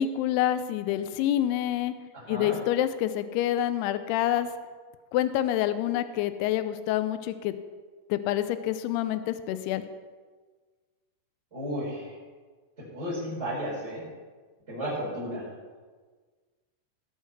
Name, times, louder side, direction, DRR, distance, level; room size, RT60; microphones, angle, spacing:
voice 1, 0.0-1.9 2.3-4.5 5.1-7.6 8.1-9.8, left 12 dB, 85° left, 12 dB, 2.4 m, -27 dB
voice 2, 2.1-2.6 11.5-12.2 12.9-14.0 14.7-15.5, equal, 15° right, -12 dB, 5.1 m, -33 dB
19.5 x 6.5 x 6.0 m, 1.5 s
omnidirectional pair, 5.1 m